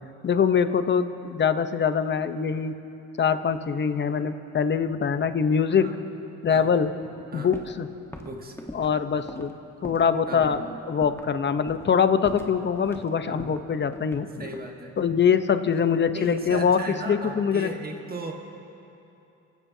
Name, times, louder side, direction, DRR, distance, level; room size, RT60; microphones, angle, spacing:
voice 1, 0.2-2.7 3.2-5.8 6.4-6.9 7.3-7.9 8.7-9.5 9.8-14.5 15.0-16.8 17.1-17.7, left 6 dB, 35° left, 10 dB, 0.9 m, -23 dB
sound 1, 7.5-7.8 8.1-10.1 10.4-10.6 11.0-11.3 11.7-12.0 12.2-13.1 13.4-14.7 15.7-16.6 16.9-17.4, left 1 dB, 10° left, 1.3 m, -42 dB
voice 2, 8.2-8.6 10.3-10.8 13.3-13.5 14.4-14.9 16.1-18.3, right 2 dB, 30° right, 1 dB, 1.5 m, -36 dB
28.5 x 15.5 x 2.8 m, 2.9 s
cardioid pair, 90°, 30 cm